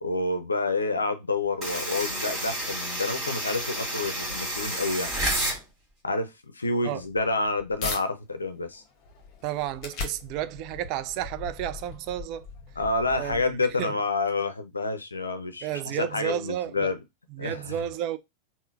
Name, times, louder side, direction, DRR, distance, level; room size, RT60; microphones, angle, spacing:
voice 1, 0.0-5.1 6.0-8.8 12.8-15.7 16.0-17.0 17.4-17.8, left 3 dB, 75° left, 0.5 m, -28 dB
sound 1, 1.6-5.6, right 1 dB, 20° right, 1.8 m, -30 dB
sound 2, 7.0-8.0 8.6-13.8, left 4 dB, 40° left, 0.8 m, -39 dB
voice 2, 9.4-12.5 13.1-14.0 15.6-16.9 17.3-18.2, right 11 dB, 40° right, 0.3 m, -32 dB
3.6 x 2.0 x 2.5 m
figure-of-eight pair, 90°, 0 cm